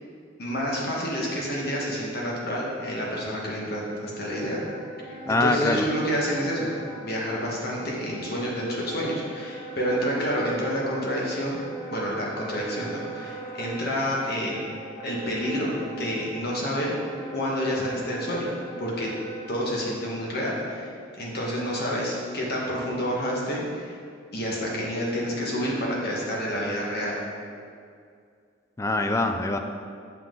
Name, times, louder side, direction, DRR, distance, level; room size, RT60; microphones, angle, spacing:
voice 1, 0.4-4.6 5.3-6.7 7.0-11.6 11.9-14.6 15.0-16.9 17.3-18.5 18.8-19.1 19.5-20.9 21.2-23.9 24.3-27.2, equal, 55° left, -3 dB, 1.5 m, -28 dB
Wind instrument woodwind instrument, 4.1-19.6, right 2 dB, 85° left, 1.7 m, -41 dB
voice 2, 5.3-5.8 28.8-29.6, left 2 dB, 15° left, 6 dB, 0.3 m, -23 dB
7.3 x 5.6 x 3.8 m, 2.3 s
head